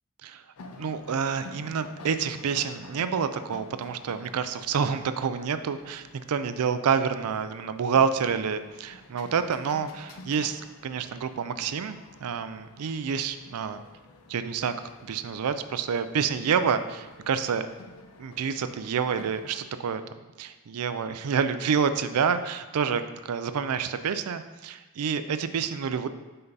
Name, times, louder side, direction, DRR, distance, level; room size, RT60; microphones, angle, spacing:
sound 1, 0.6-19.6, left 2 dB, 75° left, 0.5 m, -50 dB
voice 1, 0.8-13.8 14.3-14.8 15.0-17.7 18.2-20.0 20.4-26.1, right 6 dB, 85° right, 11 dB, 0.4 m, -28 dB
5.6 x 5.3 x 4.0 m, 1.2 s
head